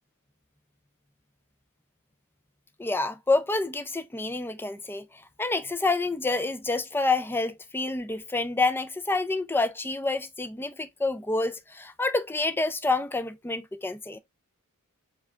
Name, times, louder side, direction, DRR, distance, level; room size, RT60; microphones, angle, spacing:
voice 1, 2.8-5.0 5.4-14.2, left 3 dB, 10° left, 0.4 m, -28 dB
4.7 x 3.3 x 2.4 m
head